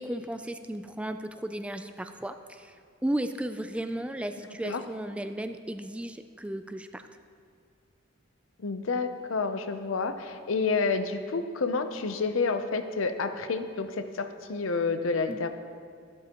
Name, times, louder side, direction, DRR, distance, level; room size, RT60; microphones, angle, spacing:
voice 1, 0.0-2.8 3.0-7.1 15.3-15.5, right 1 dB, 5° right, 8 dB, 0.3 m, -34 dB
voice 2, 8.6-15.5, left 4 dB, 75° left, 9 dB, 0.6 m, -29 dB
12.5 x 12.0 x 3.0 m, 2.2 s
head